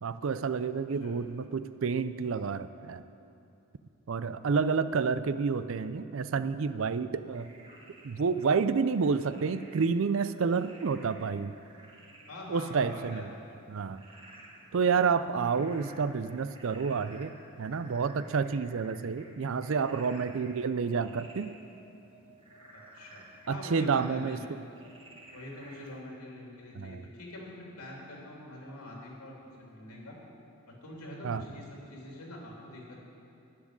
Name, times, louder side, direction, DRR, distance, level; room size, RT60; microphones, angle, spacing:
voice 1, 0.0-3.0 4.1-7.5 8.0-11.5 12.5-13.3 13.7-14.0 14.7-21.5 23.5-24.4 26.8-27.1 31.2-31.4, right 5 dB, 60° right, 13 dB, 0.4 m, -29 dB
Frog, 7.3-26.0, right 1 dB, 25° right, 1.7 m, -54 dB
voice 2, 12.3-13.3 22.7-24.4 25.3-27.5 27.8-30.2 30.7-33.0, left 1 dB, 85° left, -2 dB, 2.9 m, -45 dB
11.0 x 7.3 x 9.6 m, 2.7 s
head